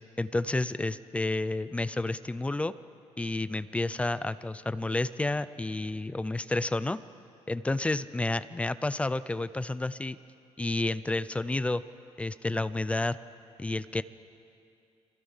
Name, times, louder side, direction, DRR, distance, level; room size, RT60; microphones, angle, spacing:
voice 1, 0.2-2.7 3.2-7.0 7.5-10.2 10.6-11.8 12.2-13.2 13.6-14.0, left 2 dB, 10° left, 15 dB, 0.5 m, -30 dB
29.5 x 24.0 x 5.6 m, 2.5 s
cardioid pair, 160°, 12 cm